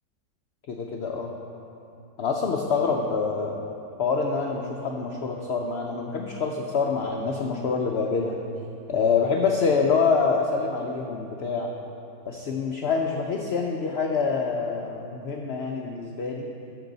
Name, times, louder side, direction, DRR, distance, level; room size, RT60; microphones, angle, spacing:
voice 1, 0.7-1.3 2.2-3.6 4.0-8.4 8.9-11.7 12.3-16.5, left 5 dB, 60° left, 1 dB, 0.7 m, -26 dB
14.0 x 6.9 x 4.0 m, 2.8 s
omnidirectional pair, 1.7 m